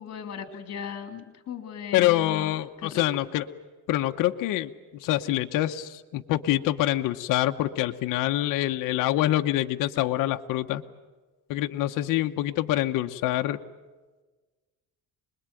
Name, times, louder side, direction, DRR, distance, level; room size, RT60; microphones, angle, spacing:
voice 1, 0.0-3.0, left 7 dB, 50° left, 7 dB, 3.4 m, -38 dB
voice 2, 1.9-3.4 3.9-4.7 5.0-10.8 11.5-13.6, left 14 dB, 70° left, 6 dB, 1.1 m, -25 dB
25.5 x 21.5 x 9.1 m, 1.3 s
cardioid pair, 120°, 33 cm